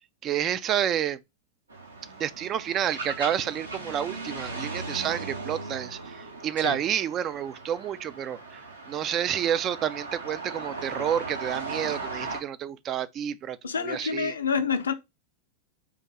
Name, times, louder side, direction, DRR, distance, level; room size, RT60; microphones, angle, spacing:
voice 1, 0.2-1.2 2.2-8.6 8.9-14.3, right 9 dB, 30° right, 0.3 m, -29 dB
sound 1, 1.7-12.4, right 3 dB, 75° right, 0.9 m, -38 dB
voice 2, 13.6-14.9, left 6 dB, 70° left, 0.5 m, -28 dB
3.6 x 2.5 x 4.3 m
figure-of-eight pair, 90°, 0 cm